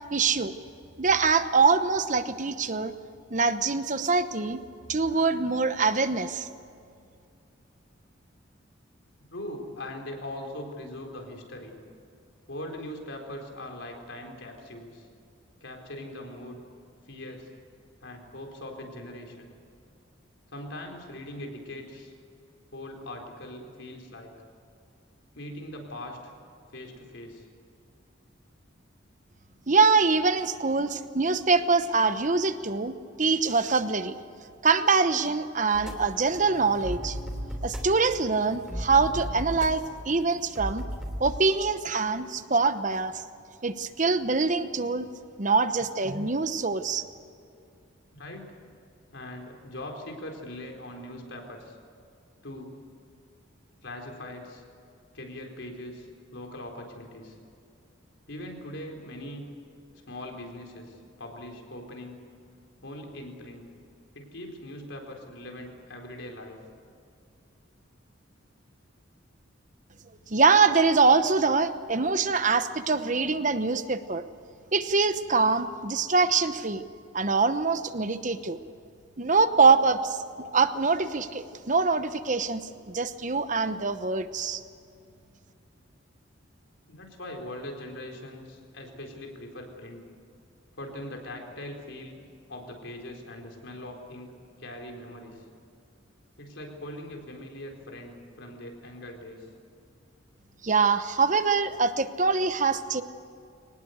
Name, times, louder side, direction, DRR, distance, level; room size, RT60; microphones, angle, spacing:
voice 1, 0.1-0.5 1.0-2.9 3.3-4.6 4.9-6.5 29.7-32.9 33.2-34.2 34.6-37.2 37.6-40.9 41.2-43.2 43.6-45.1 45.4-47.1 70.3-74.2 74.7-76.8 77.1-78.6 79.2-84.6 100.6-103.0, right 4 dB, 40° right, 11 dB, 1.0 m, -24 dB
voice 2, 9.2-11.8 12.5-15.1 15.6-16.6 17.1-17.5 18.0-19.5 20.5-22.1 22.7-24.3 25.3-26.2 26.7-27.5 47.5-47.7 48.1-48.5 49.1-51.8 52.4-52.8 53.8-54.6 55.1-57.4 58.3-59.4 60.1-62.2 62.8-63.7 64.1-66.6 86.9-90.0 90.8-92.2 92.5-94.3 94.6-95.4 96.4-99.5, left 1 dB, 70° left, 2 dB, 4.2 m, -41 dB
sound 1, 35.7-41.3, equal, 5° right, 3.3 m, -36 dB
23.5 x 19.5 x 8.1 m, 2.4 s
head